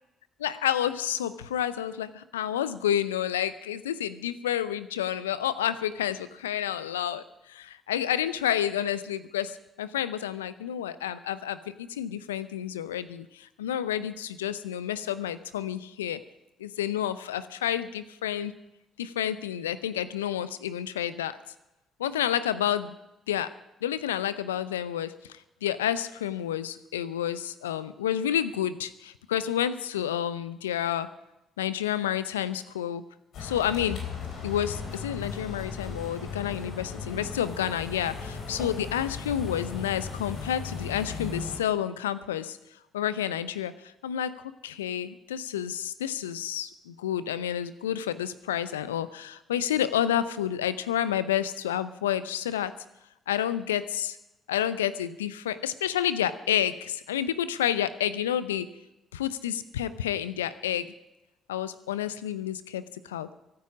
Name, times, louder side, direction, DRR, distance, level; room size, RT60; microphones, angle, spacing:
voice 1, 0.4-7.2 7.5-11.6 11.9-16.2 16.6-18.5 19.0-21.4 22.0-22.9 23.3-23.5 23.8-25.1 25.6-31.1 31.6-33.0 33.4-34.0 34.4-42.6 42.9-43.7 44.0-52.7 53.3-54.2 54.5-58.7 59.1-60.9 61.5-63.3, left 10 dB, 85° left, 15 dB, 0.6 m, -30 dB
sound 1, 33.3-41.6, left 5 dB, 60° left, 3.8 m, -37 dB
24.0 x 9.6 x 5.0 m, 0.92 s
figure-of-eight pair, 45°, 0 cm